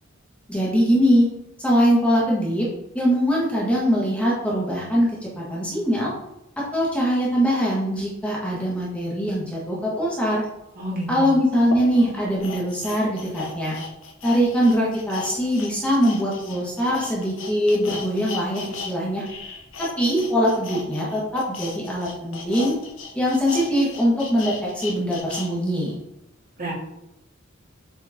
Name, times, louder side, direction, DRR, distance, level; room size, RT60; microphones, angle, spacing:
voice 1, 0.5-1.3 1.6-2.7 2.9-6.1 6.7-10.4 11.1-13.8 14.2-19.2 19.8-22.8 23.1-25.9, equal, 5° left, -6 dB, 1.5 m, -22 dB
voice 2, 10.7-11.3 26.6-26.7, right 1 dB, 45° right, -5 dB, 2.5 m, -29 dB
sound 1, 10.8-10.9 11.6-18.9 19.2-25.5 25.9-26.0, left 4 dB, 80° left, 1.2 m, -36 dB
7.8 x 4.4 x 3.6 m, 0.85 s
head